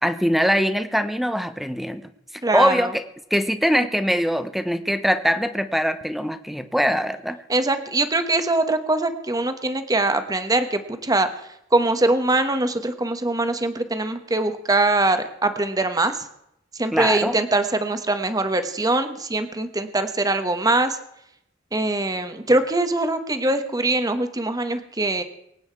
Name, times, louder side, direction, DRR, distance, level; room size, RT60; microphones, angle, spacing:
voice 1, 0.0-2.0 2.5-3.0 3.3-7.4 16.9-17.4, equal, ahead, 10 dB, 0.9 m, -22 dB
voice 2, 2.4-2.9 7.5-11.3 11.7-16.3 16.7-21.0 21.7-25.2, right 2 dB, 20° right, 9 dB, 1.2 m, -22 dB
24.0 x 8.9 x 4.6 m, 0.76 s
head